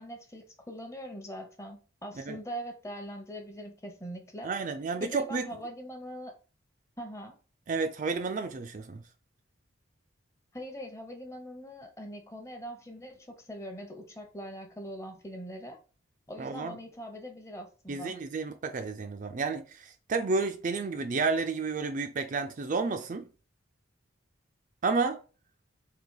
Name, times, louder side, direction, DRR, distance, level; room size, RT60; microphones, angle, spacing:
voice 1, 0.0-4.5 5.0-6.3 7.0-7.4 10.5-15.8 16.3-18.1, equal, 15° left, 0.8 m, -42 dB
voice 2, 4.4-5.5 7.7-9.0 16.4-16.8 17.9-23.3 24.8-25.2, right 4 dB, 40° right, 0.4 m, -31 dB
3.9 x 2.9 x 4.7 m
head